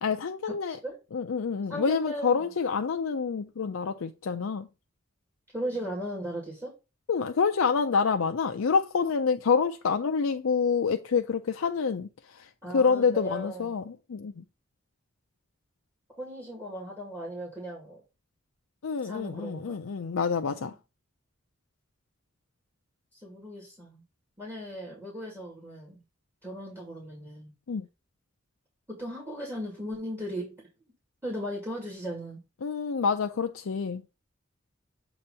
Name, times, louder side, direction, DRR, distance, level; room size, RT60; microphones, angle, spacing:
voice 1, 0.0-0.8 1.1-4.7 7.1-14.4 18.8-20.7 27.7-27.9 32.6-34.0, left 5 dB, 90° left, 0.5 m, -27 dB
voice 2, 1.7-2.5 5.5-6.7 12.6-13.7 16.1-18.0 19.0-19.8 20.5-20.8 23.1-24.0 24.4-26.0 26.4-27.5 28.9-30.6 31.2-32.4, equal, 15° right, 2.2 m, -37 dB
7.7 x 3.0 x 5.4 m
head